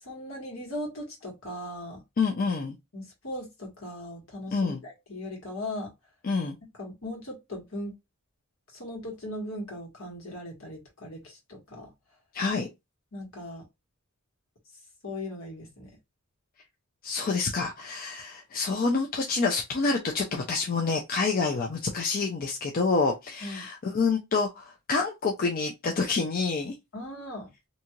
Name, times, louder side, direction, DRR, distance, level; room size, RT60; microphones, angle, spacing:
voice 1, 0.0-2.0 2.9-5.9 6.8-7.9 8.7-11.9 13.1-13.6 15.0-15.9 23.4-23.6 26.9-27.5, left 1 dB, 70° left, 1.5 m, -38 dB
voice 2, 2.2-2.7 4.5-4.8 6.2-6.5 12.3-12.7 17.0-26.7, left 4 dB, 45° left, 0.4 m, -27 dB
2.7 x 2.4 x 2.9 m
head